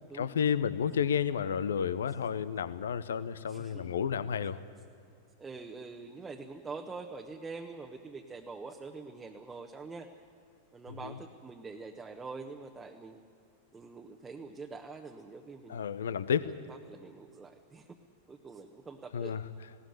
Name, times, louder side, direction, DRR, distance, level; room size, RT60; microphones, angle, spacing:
voice 1, 0.0-4.6 11.0-11.2 15.7-16.5 19.1-19.4, left 7 dB, 65° left, 16 dB, 0.8 m, -31 dB
voice 2, 3.4-4.0 5.4-10.1 10.7-13.2 13.7-15.9 16.4-18.0 18.3-19.3, right 4 dB, 15° right, 2 dB, 1.2 m, -45 dB
20.0 x 17.5 x 9.6 m, 2.4 s
figure-of-eight pair, 90°, 0 cm